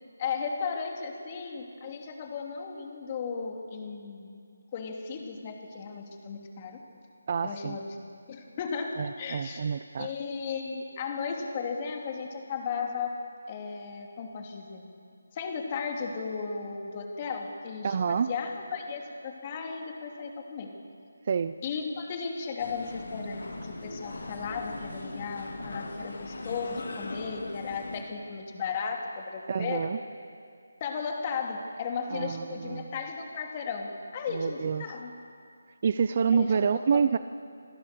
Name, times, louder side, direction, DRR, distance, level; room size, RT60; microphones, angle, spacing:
voice 1, 0.2-4.4 4.7-6.8 7.4-7.8 8.3-9.6 10.0-13.2 13.5-14.9 15.3-20.7 21.6-29.9 30.8-35.1 36.3-36.6 36.9-37.0, left 5 dB, 30° left, 2 dB, 2.8 m, -35 dB
voice 2, 7.3-7.8 9.0-10.1 17.8-18.3 21.3-21.5 29.5-30.0 32.1-32.9 34.3-34.9 35.8-37.2, right 6 dB, 40° right, 12 dB, 0.5 m, -27 dB
sound 1, 22.6-28.0, left 2 dB, 70° left, 3.6 m, -39 dB
26.0 x 15.5 x 6.8 m, 2.3 s
figure-of-eight pair, 160°, 0 cm